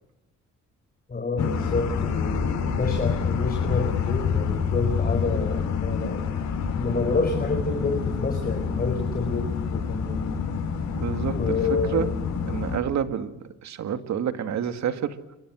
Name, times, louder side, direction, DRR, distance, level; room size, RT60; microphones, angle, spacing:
voice 1, 1.1-6.2 6.8-10.3 11.3-12.1, left 3 dB, 30° left, 5 dB, 5.1 m, -28 dB
sound 1, 1.4-12.8, left 6 dB, 70° left, 7.6 m, -27 dB
voice 2, 10.9-11.6 11.9-12.1 12.5-15.2, right 8 dB, 65° right, 8 dB, 2.3 m, -28 dB
29.0 x 24.0 x 6.4 m, 0.93 s
cardioid pair, 90°, 30 cm